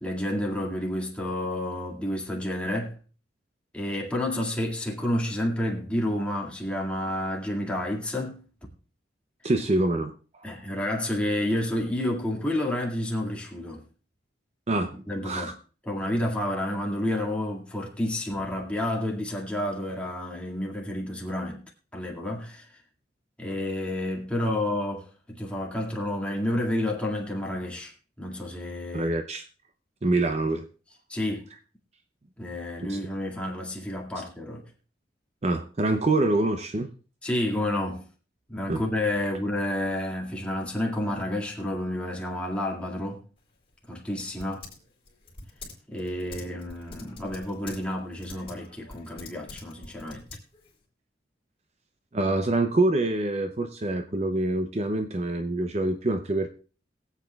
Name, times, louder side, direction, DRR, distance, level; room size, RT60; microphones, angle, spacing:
voice 1, 0.0-2.9 3.7-8.4 10.4-13.8 15.1-15.5 15.9-21.6 21.9-22.8 23.4-27.9 28.2-29.1 31.1-31.4 32.4-34.6 37.2-38.1 38.5-43.2 43.9-44.7 45.9-50.3, left 1 dB, 5° left, 2.0 m, -30 dB
voice 2, 9.4-10.5 14.7-15.5 28.9-29.4 30.0-30.7 32.9-33.0 35.4-36.9 38.7-38.8 52.1-56.5, right 2 dB, 35° right, 0.5 m, -26 dB
Typing, 43.4-50.8, left 3 dB, 30° left, 3.5 m, -46 dB
22.5 x 8.2 x 2.3 m
head